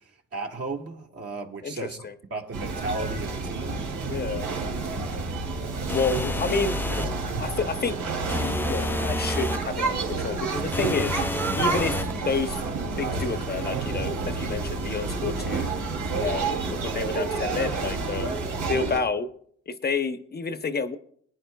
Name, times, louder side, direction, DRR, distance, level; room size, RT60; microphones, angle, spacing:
voice 1, 0.3-3.8 6.9-7.0, right 3 dB, 50° right, 1.8 m, -35 dB
voice 2, 1.6-2.1 4.1-4.5 5.9-6.8 7.4-8.0 8.4-11.2 11.6-12.0 12.2-12.6 13.0-15.7 16.2-19.3 19.7-21.0, left 4 dB, 35° left, 0.7 m, -29 dB
sound 1, 2.5-19.0, right 4 dB, 85° right, 2.7 m, -29 dB
sound 2, 5.9-7.2 8.3-9.7 10.7-12.2, left 2 dB, 5° left, 0.3 m, -30 dB
23.0 x 9.9 x 2.3 m
cardioid pair, 90°, 30 cm